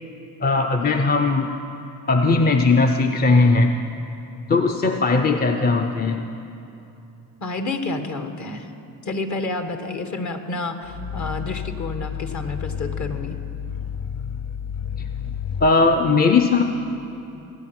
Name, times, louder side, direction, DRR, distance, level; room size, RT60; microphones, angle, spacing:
voice 1, 0.4-1.6 2.1-3.8 4.5-6.3 15.6-16.6, left 3 dB, 25° left, 5 dB, 0.6 m, -18 dB
voice 2, 7.4-8.7 9.0-13.4, left 3 dB, 50° left, 7 dB, 1.4 m, -29 dB
Growling, 10.8-15.8, left 7 dB, 65° left, 0.8 m, -31 dB
17.5 x 9.0 x 5.8 m, 2.9 s
supercardioid pair, 70°, 38 cm